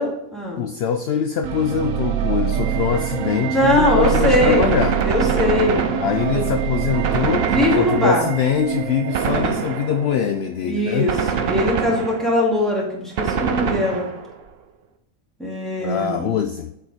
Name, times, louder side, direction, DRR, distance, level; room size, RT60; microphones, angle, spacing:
voice 1, 0.0-0.6 3.5-4.7 5.0-5.8 6.3-6.5 7.5-8.3 10.6-11.2 11.5-14.1 15.4-16.3, left 1 dB, ahead, -5 dB, 2.3 m, -21 dB
voice 2, 0.6-5.0 6.0-11.1 15.8-16.7, left 7 dB, 65° left, 7 dB, 0.6 m, -23 dB
sound 1, 1.4-10.5, right 10 dB, 75° right, 1.1 m, -25 dB
Gunshot gunfire, 4.0-6.5 7.0-8.5 9.1-10.2 11.1-12.5 13.2-14.4, right 6 dB, 55° right, 0.8 m, -24 dB
7.7 x 4.5 x 4.1 m, 0.81 s
omnidirectional pair, 1.5 m